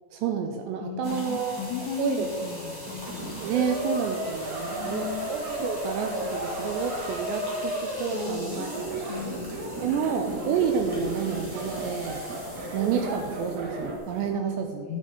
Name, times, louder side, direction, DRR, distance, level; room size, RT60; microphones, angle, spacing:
voice 1, 0.1-1.6 2.0-2.3 3.3-9.1 9.8-12.2 12.7-14.9, right 7 dB, 85° right, 5 dB, 2.6 m, -29 dB
voice 2, 0.8-3.3 4.7-5.3 8.1-8.7 9.1-9.5 14.3-14.5 14.9-15.0, left 9 dB, 85° left, 3 dB, 2.4 m, -36 dB
sound 1, 1.0-14.3, equal, 5° right, 1.7 m, -42 dB
sound 2, 2.8-14.0, equal, 60° right, 2.1 m, -34 dB
11.0 x 8.0 x 5.0 m, 2.1 s
omnidirectional pair, 5.6 m